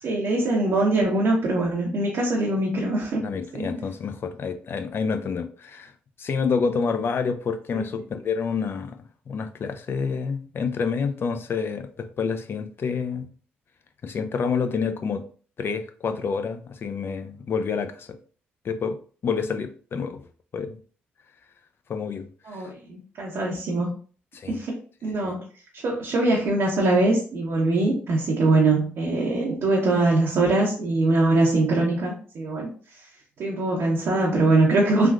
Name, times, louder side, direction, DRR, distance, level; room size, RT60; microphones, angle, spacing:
voice 1, 0.0-3.2 3.5-3.7 7.7-7.8 22.5-23.9 24.5-24.7 25.0-25.4 25.7-32.7 33.0-33.1 33.4-35.1, right 2 dB, 65° right, -3 dB, 0.7 m, -22 dB
voice 2, 3.2-5.9 6.2-9.0 9.3-13.3 14.0-15.2 15.6-18.2 18.6-19.0 19.2-20.3 20.5-20.8 21.9-22.6 24.3-24.6 25.1-25.3, left 5 dB, 50° left, 7 dB, 0.4 m, -28 dB
3.4 x 2.4 x 2.3 m, 0.41 s
hypercardioid pair, 50°, 5 cm